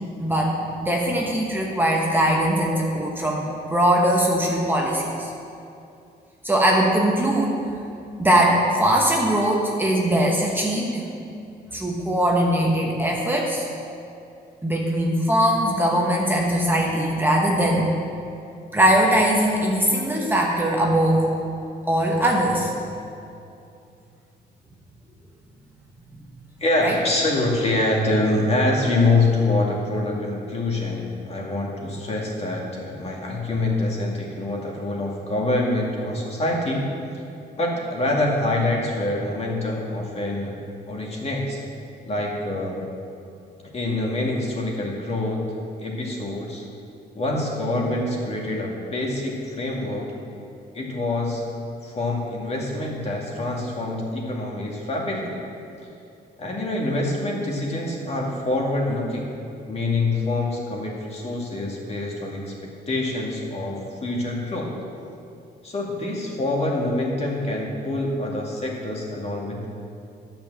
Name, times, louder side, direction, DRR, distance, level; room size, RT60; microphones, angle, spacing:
voice 1, 0.2-5.3 6.4-7.6 8.2-11.1 11.7-13.7 14.6-17.9 18.7-21.3 21.9-22.7 26.8-27.0, right 1 dB, 10° right, -2 dB, 1.1 m, -21 dB
voice 2, 26.6-36.9 37.6-40.6 40.9-41.6 42.1-42.8 43.7-45.4 45.8-46.6 47.1-50.1 50.7-51.5 51.8-55.5 56.4-59.3 59.7-62.5 62.9-64.8 65.6-69.7, left 2 dB, 35° left, -2 dB, 2.3 m, -25 dB
10.0 x 6.1 x 7.7 m, 2.6 s
cardioid pair, 110°, 18 cm